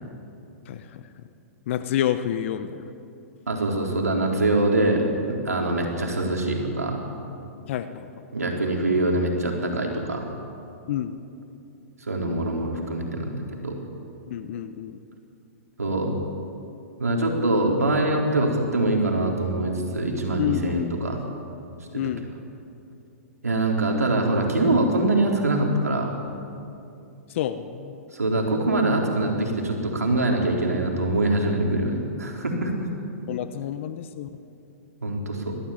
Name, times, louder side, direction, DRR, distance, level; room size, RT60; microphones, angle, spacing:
voice 1, 0.6-1.2 1.7-2.8 7.7-8.2 10.9-11.1 14.3-15.0 20.4-20.9 21.9-22.2 27.3-28.0 33.3-34.3, left 11 dB, 55° left, 11 dB, 1.0 m, -29 dB
voice 2, 3.5-7.0 8.3-10.2 12.1-13.8 15.8-16.1 17.0-21.2 23.4-26.1 28.1-32.9 35.0-35.6, right 2 dB, 90° right, 1 dB, 4.0 m, -24 dB
21.5 x 14.5 x 8.8 m, 2.7 s
hypercardioid pair, 120°, 8 cm